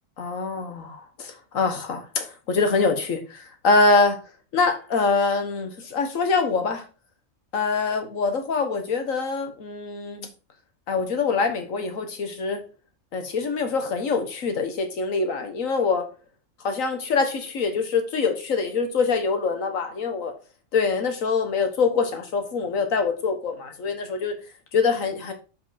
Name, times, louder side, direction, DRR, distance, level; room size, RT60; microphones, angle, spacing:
voice 1, 0.2-4.2 4.5-6.8 7.5-10.3 10.9-12.6 13.1-16.1 16.6-20.3 20.7-24.3 24.7-25.3, left 4 dB, 80° left, 6 dB, 1.6 m, -24 dB
7.3 x 5.1 x 4.1 m, 0.33 s
omnidirectional pair, 1.4 m